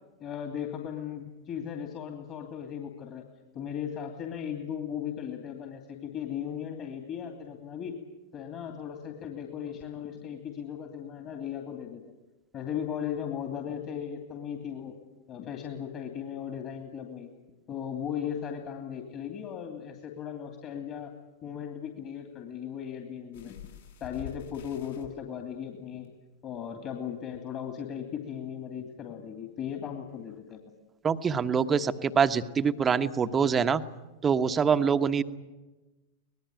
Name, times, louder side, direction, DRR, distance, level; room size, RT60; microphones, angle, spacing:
voice 1, 0.2-3.2 3.5-8.0 8.3-12.0 12.5-15.0 15.3-17.3 17.7-21.1 21.4-23.6 24.0-26.1 26.4-30.6, left 8 dB, 35° left, 3 dB, 2.8 m, -37 dB
sound 1, 23.3-25.1 26.0-26.1 26.6-26.7, left 7 dB, 70° left, 6.8 m, -45 dB
voice 2, 31.0-33.8 34.2-35.2, right 6 dB, 20° right, 10 dB, 1.2 m, -25 dB
25.0 x 20.0 x 9.1 m, 1.1 s
figure-of-eight pair, 90°, 0 cm